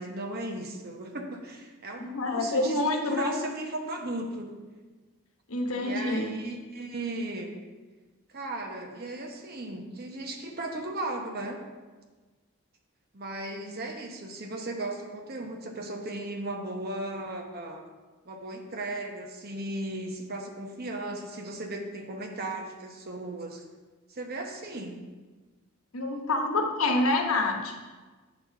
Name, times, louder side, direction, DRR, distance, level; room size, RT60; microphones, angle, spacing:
voice 1, 0.0-4.5 5.7-7.6 8.3-11.6 13.1-17.9 18.2-23.6 24.1-25.0, right 2 dB, 45° right, 3 dB, 0.9 m, -36 dB
voice 2, 2.0-3.3 5.5-6.3 25.9-27.7, left 2 dB, 80° left, 3 dB, 1.0 m, -27 dB
7.8 x 4.2 x 5.8 m, 1.3 s
head